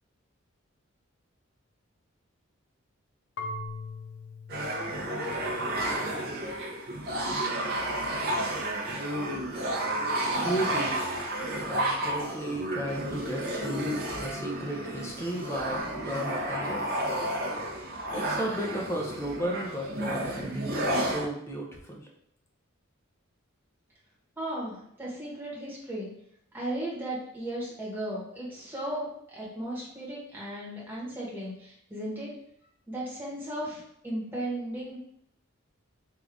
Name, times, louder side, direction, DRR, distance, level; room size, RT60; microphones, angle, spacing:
Marimba xylophone / Wood, 3.4-6.2, left 2 dB, 60° left, 0.4 m, -41 dB
sound 1, 4.5-21.3, right 1 dB, 45° right, 0.6 m, -31 dB
voice 1, 10.4-11.0 11.7-17.0 18.1-22.1, right 1 dB, 15° left, -1 dB, 0.6 m, -34 dB
voice 2, 24.4-26.1 26.5-32.3 32.9-35.0, right 1 dB, 10° right, -6 dB, 1.1 m, -36 dB
3.7 x 2.5 x 3.4 m, 0.70 s
head